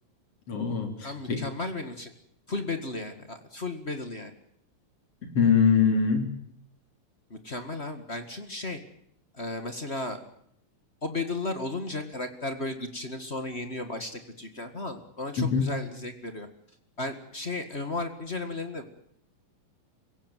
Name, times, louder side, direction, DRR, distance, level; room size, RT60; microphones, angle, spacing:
voice 1, 0.5-1.4 5.3-6.3 15.4-15.7, left 6 dB, 45° left, 6 dB, 4.4 m, -23 dB
voice 2, 1.0-2.1 2.5-4.3 7.3-8.8 9.3-10.2 11.0-16.5 17.0-19.1, left 2 dB, 25° left, 8 dB, 1.4 m, -34 dB
25.0 x 16.5 x 9.2 m, 0.70 s
omnidirectional pair, 4.0 m